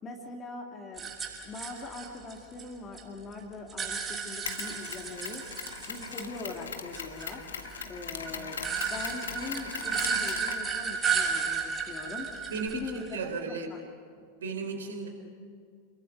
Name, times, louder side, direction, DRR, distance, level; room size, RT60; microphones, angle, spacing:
voice 1, 0.0-1.1 1.4-5.4 5.9-7.4 7.9-12.3 12.7-13.2 13.5-13.8, left 3 dB, 25° left, 1 dB, 2.7 m, -41 dB
sound 1, 1.0-3.0 3.3-6.6 6.9-13.3, right 6 dB, 20° right, 6.2 m, -33 dB
Mechanisms, 4.5-12.7, left 6 dB, 70° left, 1.7 m, -41 dB
voice 2, 12.5-13.7 14.4-15.1, right 4 dB, 65° right, 5 dB, 4.2 m, -35 dB
28.5 x 22.0 x 6.7 m, 2.1 s
figure-of-eight pair, 90°, 0 cm